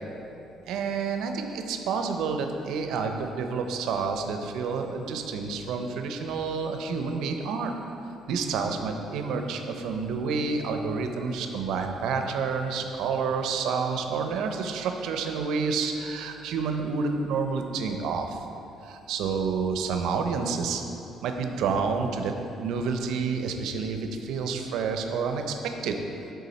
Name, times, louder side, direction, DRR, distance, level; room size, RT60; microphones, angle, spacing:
voice 1, 0.7-7.7 8.3-18.4 18.8-20.8 21.2-25.9, right 5 dB, 80° right, 5 dB, 0.5 m, -29 dB
8.4 x 3.7 x 4.1 m, 2.9 s
cardioid pair, 115°, 0 cm